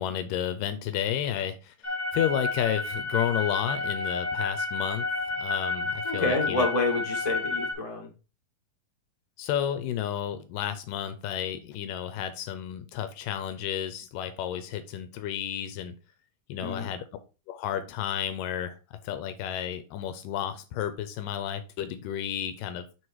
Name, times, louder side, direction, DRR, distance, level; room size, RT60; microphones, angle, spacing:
voice 1, 0.0-5.1 5.3-6.7 9.4-15.9 16.5-17.0 17.5-18.8 19.0-22.9, left 10 dB, 80° left, 11 dB, 2.1 m, -32 dB
sound 1, 1.8-7.7, left 3 dB, 60° left, 0.4 m, -30 dB
voice 2, 6.0-8.1 16.6-16.9, left 2 dB, 20° left, 0 dB, 1.0 m, -28 dB
5.8 x 4.8 x 4.6 m, 0.32 s
omnidirectional pair, 4.1 m